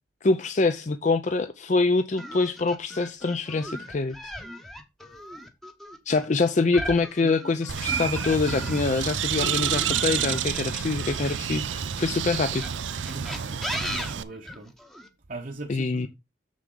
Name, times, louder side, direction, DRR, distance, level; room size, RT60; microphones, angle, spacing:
voice 1, 0.2-4.2 6.1-12.6 15.7-16.1, left 3 dB, 40° left, 0.5 m, -25 dB
sound 1, 2.2-9.0 9.4-11.8 12.5-15.1, equal, ahead, 0.9 m, -37 dB
Bird, 7.7-14.2, right 8 dB, 90° right, 0.6 m, -29 dB
voice 2, 13.0-14.7 15.3-16.1, right 2 dB, 45° right, 0.9 m, -39 dB
7.2 x 6.2 x 3.8 m
head